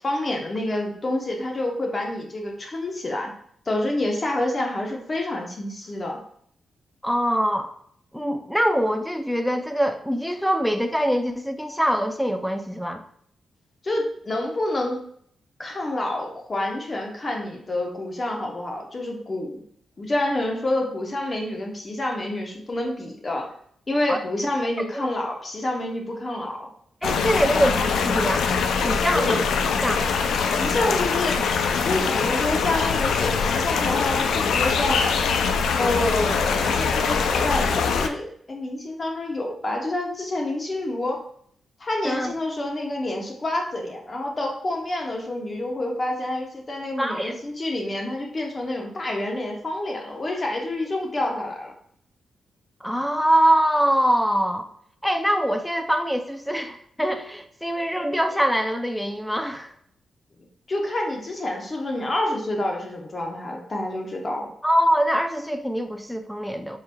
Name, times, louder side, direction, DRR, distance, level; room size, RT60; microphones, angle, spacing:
voice 1, 0.0-3.3 3.7-6.2 13.8-15.0 15.6-19.6 20.0-23.5 23.9-26.6 29.1-29.4 30.6-31.4 31.8-35.0 35.8-41.2 41.8-51.7 60.7-64.5, left 1 dB, 40° left, 1 dB, 0.9 m, -28 dB
voice 2, 7.0-7.7 8.1-13.0 24.1-24.2 24.9-25.1 27.0-28.5 28.8-29.4 29.8-30.1 42.0-42.3 47.0-47.4 52.8-54.7 55.0-59.7 64.6-66.8, equal, 5° left, 7 dB, 0.4 m, -23 dB
sound 1, 27.0-38.1, left 5 dB, 80° left, 0.3 m, -23 dB
4.7 x 2.9 x 2.2 m, 0.64 s
supercardioid pair, 55°, 0 cm